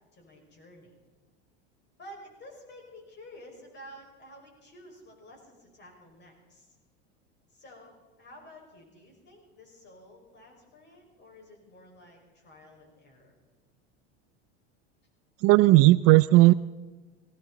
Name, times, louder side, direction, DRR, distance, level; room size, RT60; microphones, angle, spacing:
voice 1, 0.1-0.9 2.0-6.8 7.5-13.3, equal, 35° left, 1 dB, 5.6 m, -51 dB
voice 2, 15.4-16.5, right 19 dB, 45° right, 16 dB, 0.4 m, -16 dB
18.0 x 18.0 x 4.1 m, 1.2 s
hypercardioid pair, 100°, 33 cm